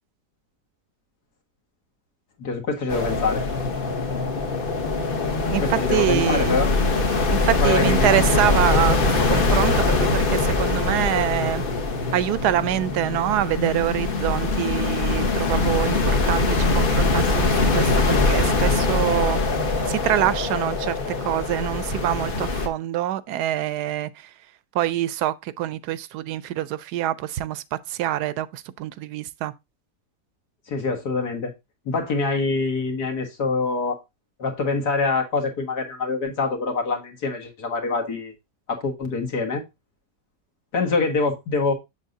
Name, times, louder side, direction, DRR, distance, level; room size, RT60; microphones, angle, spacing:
voice 1, 2.4-3.4 5.6-6.7 7.6-8.3 30.7-31.5 31.9-34.0 34.4-38.3 38.7-39.6 40.7-41.7, left 3 dB, 75° left, 2.2 m, -25 dB
sound 1, 2.9-22.7, left 3 dB, 40° left, 1.2 m, -22 dB
voice 2, 5.5-6.7 7.3-11.6 12.1-19.4 19.9-20.9 21.2-24.1 24.7-29.5, right 12 dB, 80° right, 1.1 m, -25 dB
7.4 x 7.1 x 2.6 m
omnidirectional pair, 1.7 m